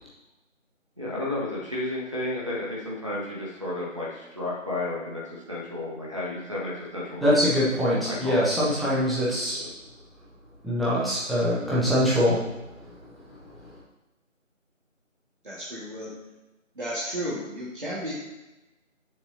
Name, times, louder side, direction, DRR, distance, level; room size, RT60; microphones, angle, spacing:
voice 1, 1.0-7.5 8.0-8.6 9.6-9.7, left 1 dB, 25° right, -7 dB, 1.6 m, -32 dB
voice 2, 7.2-9.6 10.6-12.4, equal, ahead, -10 dB, 0.9 m, -23 dB
voice 3, 15.4-16.1 16.8-18.1, equal, 40° right, -8 dB, 1.8 m, -33 dB
14.5 x 6.9 x 2.8 m, 1.0 s
figure-of-eight pair, 170°, 39 cm